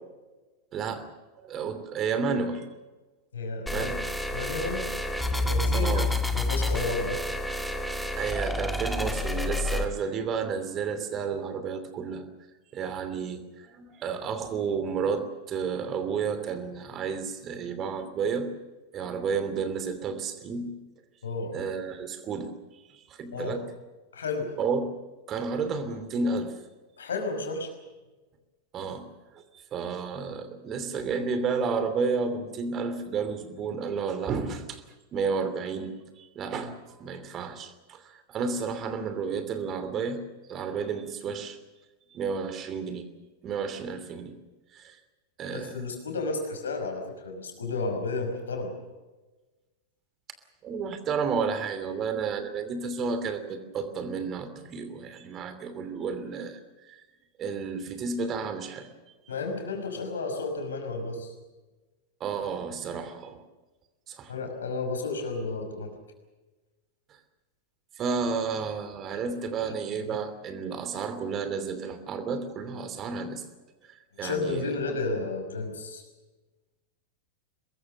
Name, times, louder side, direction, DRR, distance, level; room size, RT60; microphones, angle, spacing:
voice 1, 0.7-1.1 1.4-2.7 3.7-4.0 5.7-6.1 8.2-12.2 12.7-18.5 18.9-20.7 21.5-22.5 22.9-23.6 24.6-24.9 25.3-26.5 28.7-29.1 29.3-29.4 29.7-34.8 35.1-40.2 40.5-41.6 42.1-43.1 43.4-44.3 44.7-45.0 45.4-45.8 50.6-56.6 56.9-57.0 57.4-58.9 62.2-63.4 64.1-64.3 68.0-73.4 73.9-74.9, right 5 dB, 30° right, 10 dB, 2.9 m, -31 dB
voice 2, 3.3-3.9 4.3-4.9 5.3-6.0 6.3-7.2 21.2-21.6 23.3-23.6 24.1-24.6 27.0-27.7 45.5-48.7 59.3-61.3 64.3-65.9 74.2-76.0, left 3 dB, 70° left, 4 dB, 5.4 m, -32 dB
sound 1, 3.7-9.8, left 1 dB, 5° left, 1.8 m, -29 dB
23.5 x 21.5 x 6.7 m, 1.2 s
figure-of-eight pair, 90°, 0 cm